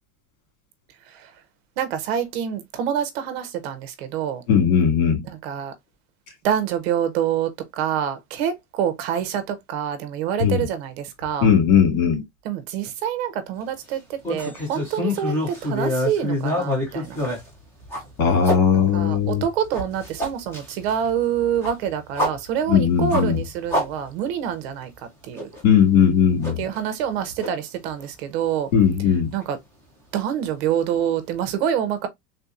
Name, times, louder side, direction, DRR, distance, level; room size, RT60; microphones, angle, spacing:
voice 1, 1.8-4.4 5.3-5.7 6.4-11.5 12.4-17.2 18.7-24.9 25.2-25.5 26.6-28.7 29.3-29.6 30.1-32.1, right 9 dB, 45° right, 0.7 m, -26 dB
voice 2, 4.5-5.2 10.4-10.6 11.4-12.2 18.2-19.4 22.7-23.4 25.6-26.6 28.7-29.3, left 7 dB, 85° left, 2.3 m, -18 dB
sound 1, 14.2-18.6 19.1-24.5 24.8-24.9 25.3-25.6 26.4-27.1 27.4-27.5 28.0-28.1 29.4-29.5, left 1 dB, 5° left, 0.4 m, -27 dB
3.5 x 2.7 x 2.3 m
supercardioid pair, 170°, 42 cm